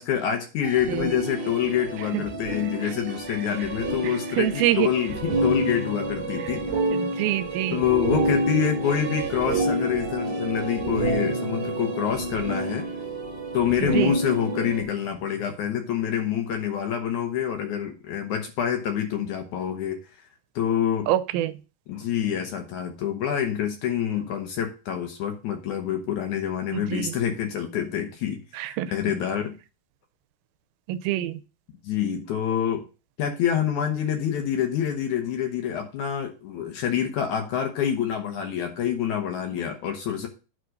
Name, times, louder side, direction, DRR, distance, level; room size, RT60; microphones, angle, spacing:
voice 1, 0.0-6.8 7.7-12.9 13.5-20.2 20.6-21.1 21.9-29.6 31.8-32.8 33.2-40.3, left 9 dB, 70° left, 5 dB, 2.0 m, -27 dB
sound 1, 0.6-14.8, right 1 dB, 25° right, 1.9 m, -28 dB
voice 2, 4.4-4.9 6.9-7.8 13.9-14.1 21.1-21.5 26.7-27.1 28.6-28.9 30.9-31.4, right 13 dB, 90° right, 13 dB, 2.5 m, -25 dB
9.3 x 3.8 x 6.4 m, 0.32 s
omnidirectional pair, 4.3 m